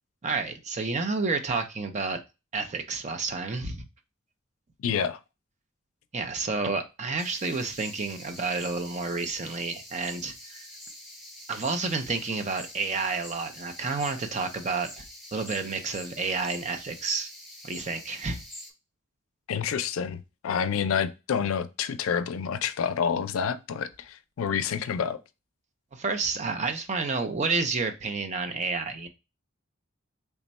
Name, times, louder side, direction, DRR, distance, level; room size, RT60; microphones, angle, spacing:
voice 1, 0.2-2.2 2.5-3.9 6.1-10.6 11.5-15.0 15.3-17.3 17.6-18.4 25.9-29.1, right 4 dB, 35° right, 0.5 m, -30 dB
voice 2, 4.8-5.2 19.5-25.2, left 7 dB, 85° left, 0.4 m, -28 dB
sound 1, 7.2-18.7, left 1 dB, ahead, 0.8 m, -45 dB
3.4 x 2.2 x 4.0 m
head